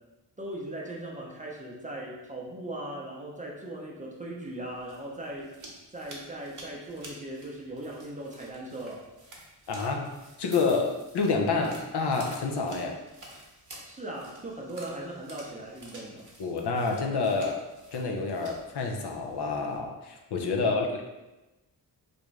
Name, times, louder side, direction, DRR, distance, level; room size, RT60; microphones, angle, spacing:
voice 1, 0.4-5.5 5.9-9.1 13.9-16.2 20.7-20.9, right 1 dB, 20° right, -3 dB, 0.5 m, -39 dB
sound 1, 4.6-19.8, right 1 dB, 45° right, 0.8 m, -51 dB
voice 2, 9.7-10.1 10.4-13.0 16.4-17.6 17.9-21.0, left 4 dB, 70° left, 2 dB, 0.6 m, -28 dB
3.4 x 2.6 x 3.1 m, 1.0 s
wide cardioid pair, 140°, 41 cm